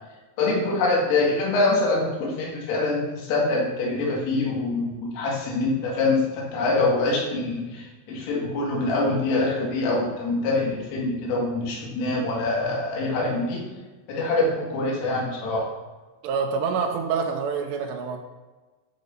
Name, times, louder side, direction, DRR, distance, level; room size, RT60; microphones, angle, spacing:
voice 1, 0.4-13.6 14.1-15.7, left 2 dB, 90° left, -3 dB, 4.4 m, -24 dB
voice 2, 16.2-18.2, right 5 dB, 90° right, 2 dB, 2.5 m, -26 dB
13.5 x 6.5 x 2.6 m, 1.2 s
omnidirectional pair, 5.7 m